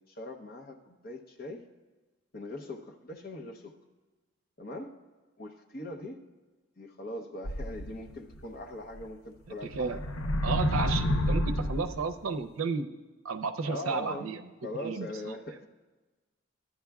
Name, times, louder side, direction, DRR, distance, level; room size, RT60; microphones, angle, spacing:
voice 1, 0.1-1.6 2.3-3.7 4.6-4.9 5.4-6.2 6.8-10.0 13.6-14.3 14.6-15.7, left 1 dB, 45° left, 4 dB, 0.8 m, -41 dB
sound 1, 7.4-8.4 9.0-9.1 9.6-12.1, left 1 dB, 85° left, 0.6 m, -29 dB
voice 2, 9.5-10.0 10.4-12.9 13.2-14.4 14.8-15.3, right 4 dB, 90° right, 8 dB, 0.5 m, -33 dB
14.5 x 10.0 x 2.3 m, 1.2 s
head